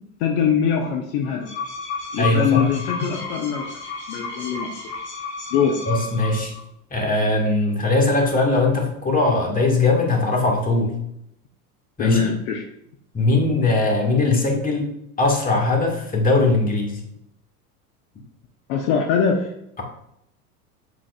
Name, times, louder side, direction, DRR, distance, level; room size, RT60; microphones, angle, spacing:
voice 1, 0.2-1.5 2.1-3.7 4.1-4.8 5.5-5.8 12.0-12.6 18.7-19.5, left 7 dB, 50° left, 2 dB, 1.1 m, -22 dB
sound 1, 1.2-6.6, left 4 dB, 85° left, 2.2 m, -32 dB
voice 2, 2.2-2.7 5.9-6.5 6.9-10.9 12.0-12.3 13.1-14.9 15.2-17.0, left 2 dB, 20° left, 0 dB, 1.9 m, -20 dB
7.5 x 6.3 x 2.5 m, 0.77 s
hypercardioid pair, 90°, 46 cm